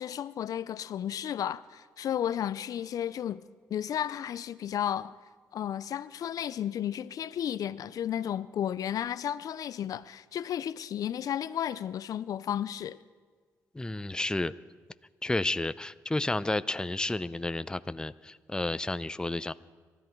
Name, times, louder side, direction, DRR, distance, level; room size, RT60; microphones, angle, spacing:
voice 1, 0.0-3.4 3.7-5.2 5.5-13.0, left 10 dB, 70° left, 0.5 m, -33 dB
voice 2, 13.7-14.5 15.2-19.5, left 2 dB, 10° left, 0.6 m, -31 dB
23.0 x 13.5 x 4.6 m
supercardioid pair, 65°, 6 cm